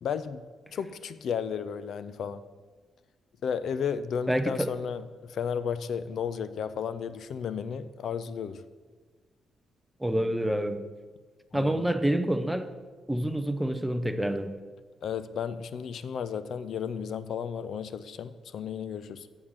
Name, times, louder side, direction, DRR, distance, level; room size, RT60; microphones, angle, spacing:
voice 1, 0.0-2.4 3.4-8.6 11.5-11.8 15.0-19.3, left 7 dB, 55° left, 13 dB, 0.4 m, -33 dB
voice 2, 4.3-4.7 10.0-10.8 11.5-12.7 13.1-14.5, right 1 dB, 5° right, 8 dB, 0.5 m, -27 dB
7.3 x 7.1 x 6.5 m, 1.4 s
cardioid pair, 160°, 0 cm